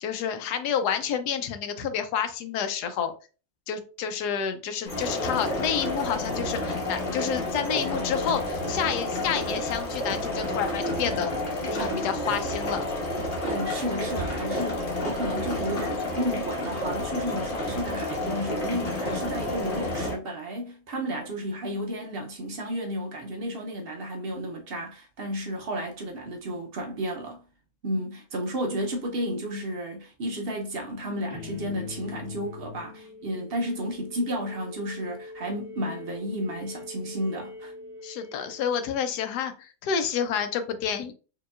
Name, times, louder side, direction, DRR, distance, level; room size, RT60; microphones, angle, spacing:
voice 1, 0.0-3.1 3.7-11.3 11.6-12.8 38.0-41.1, left 8 dB, 85° left, 1.1 m, -29 dB
sound 1, 4.9-20.1, left 1 dB, 35° left, 1.1 m, -30 dB
voice 2, 13.4-27.4 27.8-37.7, equal, 70° right, 0.5 m, -32 dB
sound 2, 31.3-39.2, left 3 dB, 20° right, 1.3 m, -43 dB
4.6 x 2.9 x 2.3 m
omnidirectional pair, 1.7 m